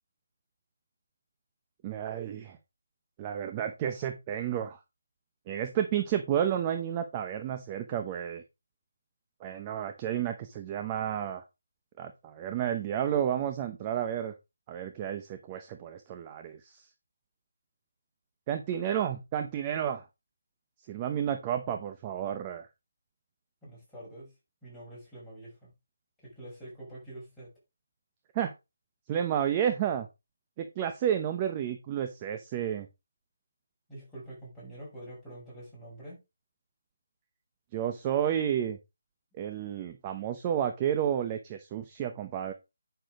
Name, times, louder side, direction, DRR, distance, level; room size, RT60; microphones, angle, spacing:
voice 1, 1.8-2.6 3.2-4.8 5.5-8.4 9.4-11.4 12.0-14.3 14.7-16.8 18.5-20.0 20.9-22.7 28.3-28.5 29.1-30.1 30.6-32.9 37.7-38.8 39.4-42.5, right 9 dB, 15° right, 0.9 m, -31 dB
voice 2, 23.6-24.3 24.6-25.7 26.2-27.5 33.9-36.2, right 1 dB, ahead, 5.7 m, -46 dB
9.9 x 6.7 x 3.7 m
figure-of-eight pair, 170°, 0 cm